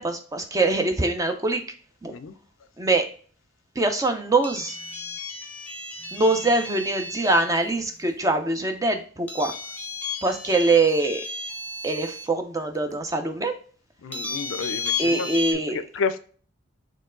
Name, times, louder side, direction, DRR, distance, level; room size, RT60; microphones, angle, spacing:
voice 1, 0.0-1.6 2.0-2.1 2.8-3.1 3.8-4.8 6.1-9.5 10.2-11.2 11.8-13.5 15.0-15.8, right 2 dB, 15° right, 6 dB, 0.5 m, -23 dB
sound 1, 4.4-7.5 9.3-12.3 12.9-13.0 14.1-15.5, left 3 dB, 10° left, 0.8 m, -33 dB
voice 2, 14.0-16.2, left 4 dB, 70° left, 13 dB, 0.4 m, -31 dB
4.4 x 3.1 x 3.7 m, 0.42 s
head